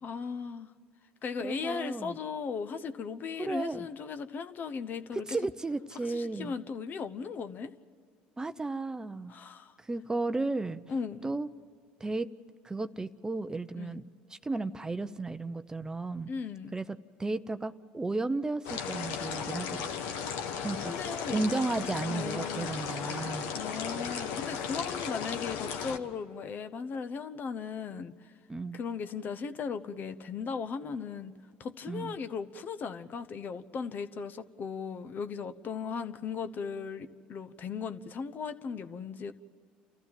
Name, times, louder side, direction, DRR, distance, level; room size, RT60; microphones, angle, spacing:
voice 1, 0.0-0.7 1.2-5.3 6.1-7.7 9.3-9.7 10.9-11.3 13.7-14.0 16.3-16.7 20.4-21.5 22.1-22.8 23.5-28.3 28.7-31.3 31.6-39.3, left 5 dB, 45° left, 10 dB, 0.9 m, -37 dB
voice 2, 1.4-2.2 3.4-3.9 5.1-6.5 8.4-9.3 9.8-10.8 11.2-11.5 12.0-12.3 12.6-14.0 14.3-16.3 16.7-19.9 20.6-20.9 21.3-23.5 28.5-28.8 31.9-32.2, right 3 dB, 15° right, 11 dB, 0.6 m, -34 dB
sound 1, 18.6-26.0, left 7 dB, 70° left, 1.4 m, -35 dB
29.5 x 14.5 x 7.7 m, 2.2 s
hypercardioid pair, 80°, 4 cm